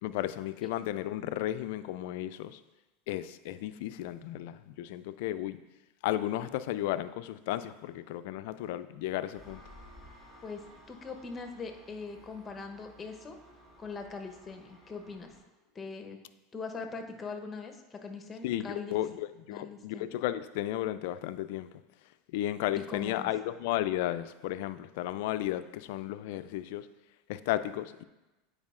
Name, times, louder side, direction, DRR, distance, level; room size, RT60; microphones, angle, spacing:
voice 1, 0.0-2.6 3.1-5.6 6.0-9.6 18.4-21.7 22.3-26.9 27.3-28.0, left 13 dB, 70° left, 12 dB, 0.3 m, -34 dB
Engine, 9.3-15.4, equal, 15° right, 2.2 m, -55 dB
voice 2, 10.4-13.4 13.8-15.4 15.7-16.2 16.5-18.9 19.5-20.2 22.9-23.3, left 4 dB, 25° left, 5 dB, 0.8 m, -41 dB
9.6 x 4.8 x 2.5 m, 1.0 s
hypercardioid pair, 100°, 0 cm